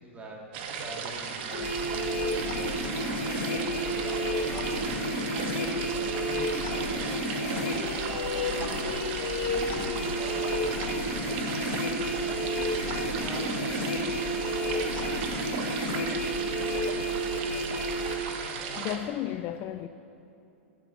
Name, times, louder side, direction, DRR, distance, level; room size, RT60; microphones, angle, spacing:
voice 1, 0.0-10.8 11.2-11.9 12.5-14.6 15.0-16.7 17.1-17.9, right 1 dB, 20° right, 2.5 m, -45 dB
sound 1, 0.5-19.0, right 6 dB, 55° right, 1.4 m, -36 dB
sound 2, 1.5-18.2, equal, 55° left, 2.7 m, -31 dB
sound 3, 2.8-18.8, left 2 dB, 10° left, 2.3 m, -49 dB
voice 2, 18.8-19.9, left 12 dB, 40° left, 0.5 m, -33 dB
11.5 x 8.3 x 7.1 m
hypercardioid pair, 115°, 7 cm